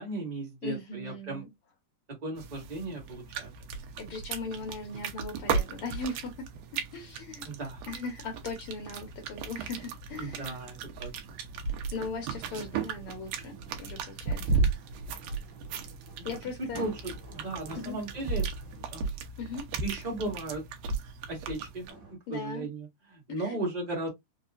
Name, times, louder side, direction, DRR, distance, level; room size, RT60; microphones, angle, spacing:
voice 1, 0.0-1.4 2.2-3.5 7.4-7.8 10.2-11.1 16.2-16.3 16.8-18.4 18.9-19.1 19.8-20.6 21.3-21.8 22.3-22.9 23.1-24.1, right 2 dB, 30° right, 0.7 m, -36 dB
voice 2, 0.6-1.5 4.0-6.5 6.9-7.5 7.9-10.6 11.9-14.6 16.2-16.9 17.7-18.0 19.4-19.6 22.3-22.7 23.3-23.6, left 3 dB, 80° left, 1.2 m, -39 dB
sound 1, 2.4-21.9, right 5 dB, 80° right, 2.3 m, -35 dB
sound 2, 3.9-19.1 20.8-20.9 21.6-22.2, right 3 dB, 50° right, 1.5 m, -53 dB
5.4 x 2.3 x 2.4 m
omnidirectional pair, 3.6 m